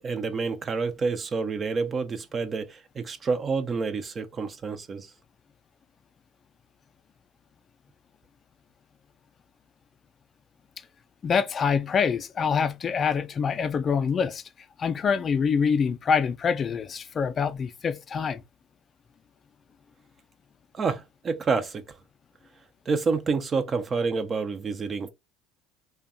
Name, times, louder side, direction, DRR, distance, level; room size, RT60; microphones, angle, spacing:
voice 1, 0.0-5.1 20.7-21.8 22.9-25.1, right 4 dB, 35° right, 0.4 m, -28 dB
voice 2, 11.2-14.4 14.8-18.4, left 6 dB, 40° left, 0.3 m, -25 dB
2.6 x 2.2 x 2.4 m
hypercardioid pair, 75°, 0 cm